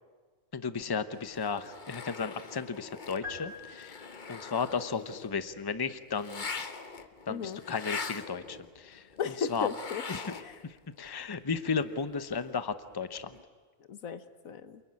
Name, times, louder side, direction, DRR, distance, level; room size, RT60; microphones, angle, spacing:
voice 1, 0.5-4.0 4.3-6.5 7.3-9.0 9.5-9.7 10.1-10.4 10.6-13.3, left 5 dB, 20° left, 12 dB, 0.8 m, -34 dB
sound 1, 1.1-10.7 11.0-13.4, left 4 dB, 40° left, 1.2 m, -43 dB
sound 2, 3.2-4.5, left 4 dB, 85° right, 5.8 m, -44 dB
voice 2, 7.3-7.6 9.2-10.0 10.4-10.6 13.9-14.8, left 7 dB, 85° left, 12 dB, 1.6 m, -35 dB
28.0 x 22.0 x 9.8 m, 1.4 s
omnidirectional pair, 1.4 m